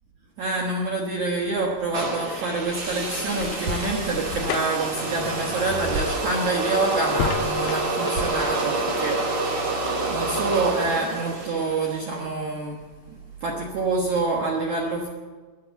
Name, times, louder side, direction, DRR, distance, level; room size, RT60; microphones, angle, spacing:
voice 1, 0.4-9.2 9.5-12.8 13.4-15.1, right 3 dB, 80° right, -1 dB, 1.7 m, -27 dB
sound 1, 1.6-8.3, left 9 dB, 85° left, 2.3 m, -35 dB
sound 2, 1.9-12.1, right 2 dB, 40° right, 3.2 m, -28 dB
sound 3, 2.4-9.3, right 1 dB, 60° right, 2.7 m, -39 dB
12.0 x 11.5 x 8.1 m, 1.4 s
omnidirectional pair, 5.6 m